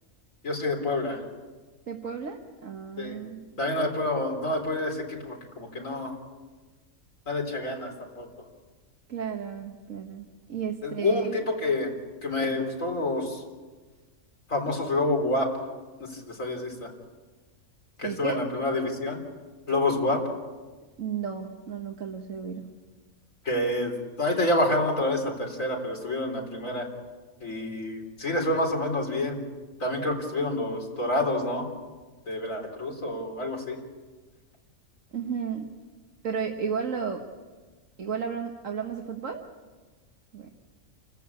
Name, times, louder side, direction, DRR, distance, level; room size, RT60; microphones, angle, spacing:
voice 1, 0.4-1.2 3.0-3.2 3.6-6.1 7.3-7.9 8.2-8.3 10.8-11.9 12.2-13.4 14.5-15.5 16.0-16.9 18.0-19.2 19.7-20.2 23.4-26.9 27.4-29.4 29.8-31.7 32.3-33.8, left 2 dB, 65° left, 2 dB, 4.3 m, -28 dB
voice 2, 1.9-3.4 9.1-11.4 18.0-18.4 21.0-22.7 35.1-35.7 36.2-37.2 38.0-39.5 40.3-40.5, right 6 dB, 60° right, 2 dB, 1.7 m, -33 dB
29.0 x 14.5 x 8.4 m, 1.3 s
omnidirectional pair, 1.5 m